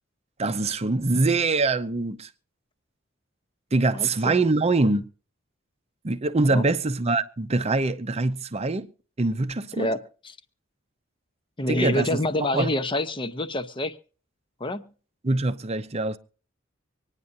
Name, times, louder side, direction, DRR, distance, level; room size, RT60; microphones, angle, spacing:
voice 1, 0.4-2.3 3.7-5.1 6.0-8.9 9.2-9.9 11.7-12.2 12.5-12.7 15.2-16.2, right 3 dB, 30° right, 0.6 m, -24 dB
voice 2, 3.9-4.3 6.4-6.6 9.7-10.4 11.6-14.0 14.6-14.9, left 1 dB, 25° left, 0.8 m, -27 dB
25.0 x 9.8 x 2.6 m
head